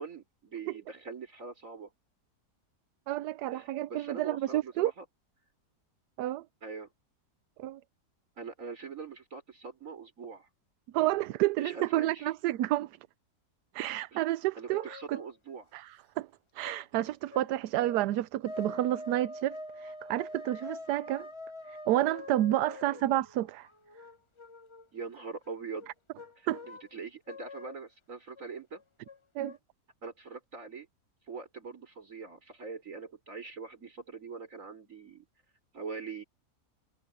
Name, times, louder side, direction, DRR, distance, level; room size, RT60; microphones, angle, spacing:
voice 1, 0.0-1.9 3.5-5.0 6.6-6.9 8.4-10.5 11.6-12.3 14.1-14.2 14.5-15.7 22.6-23.0 24.9-25.9 26.4-28.8 30.0-30.9 31.3-35.2 35.7-36.2, right 5 dB, 50° right, 4.5 m, -43 dB
voice 2, 3.1-4.9 6.2-6.4 7.6-7.8 10.9-13.0 13.7-15.2 15.7-15.9 16.2-16.3 16.5-21.3 21.7-23.7 26.5-26.6 29.4-29.6, right 14 dB, 80° right, 1.1 m, -30 dB
sound 1, 14.7-15.3 16.6-18.2 18.4-24.9 25.5-26.9 27.3-27.8 28.4-28.5 28.7-29.6, left 1 dB, 35° left, 0.5 m, -45 dB
omnidirectional pair, 1.7 m